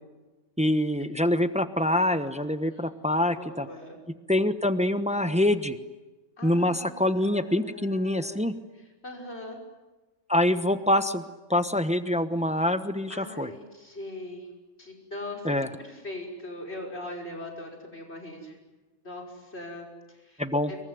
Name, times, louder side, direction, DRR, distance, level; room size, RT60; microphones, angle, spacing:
voice 1, 0.6-3.7 4.3-5.8 6.4-8.5 10.3-11.2 11.5-13.5 15.4-15.7 20.4-20.7, left 1 dB, 5° right, 10 dB, 1.0 m, -25 dB
voice 2, 3.4-4.0 6.4-8.6 9.0-9.6 13.1-14.5 14.8-18.6 19.0-20.8, left 1 dB, 50° left, 1 dB, 6.1 m, -41 dB
26.5 x 23.0 x 9.5 m, 1.2 s
omnidirectional pair, 1.4 m